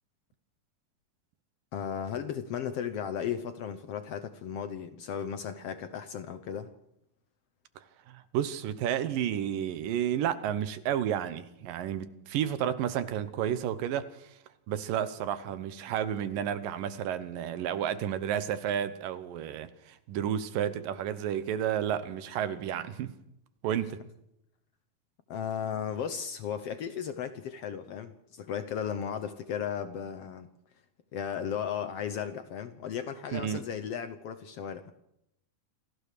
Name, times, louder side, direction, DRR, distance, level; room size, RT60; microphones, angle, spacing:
voice 1, 1.7-6.7 25.3-30.5 31.1-35.0, left 8 dB, 75° left, 10 dB, 1.4 m, -35 dB
voice 2, 8.1-14.3 14.7-23.1 23.6-24.0 33.3-33.6, right 10 dB, 75° right, 12 dB, 2.7 m, -31 dB
28.0 x 15.0 x 6.7 m, 0.81 s
omnidirectional pair, 4.0 m